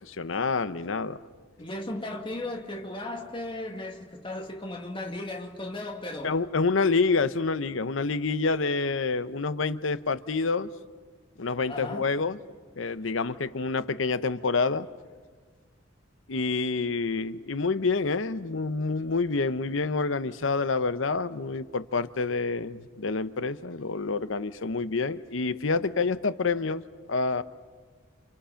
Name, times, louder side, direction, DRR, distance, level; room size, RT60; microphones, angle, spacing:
voice 1, 0.0-1.2 6.2-10.7 11.4-12.4 12.8-14.9 16.3-26.8 27.1-27.4, left 4 dB, 85° left, 0.8 m, -27 dB
voice 2, 1.6-6.3 11.7-12.1, left 1 dB, 25° left, 2.3 m, -36 dB
29.5 x 28.0 x 5.8 m
head